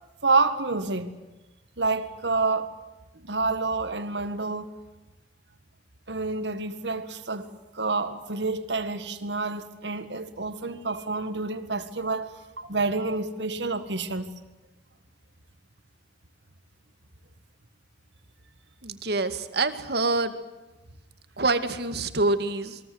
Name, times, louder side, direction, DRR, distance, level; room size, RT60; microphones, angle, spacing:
voice 1, 0.2-1.1 1.8-2.8 3.2-4.7 6.1-7.5 7.7-14.3, right 3 dB, 85° right, 1.9 m, -28 dB
voice 2, 18.8-20.4 21.4-22.8, right 3 dB, 65° right, 2.1 m, -26 dB
28.5 x 22.5 x 8.0 m
head